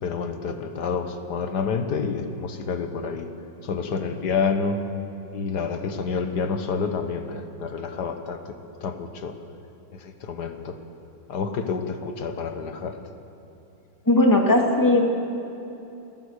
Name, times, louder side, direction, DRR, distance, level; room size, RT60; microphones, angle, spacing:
voice 1, 0.0-3.3 3.6-4.9 5.3-8.5 8.8-9.3 9.9-10.8 11.3-13.0, left 5 dB, 65° left, 7 dB, 1.8 m, -28 dB
voice 2, 14.1-15.0, left 2 dB, 10° left, 0 dB, 2.2 m, -18 dB
29.0 x 13.5 x 6.6 m, 2.9 s
omnidirectional pair, 1.9 m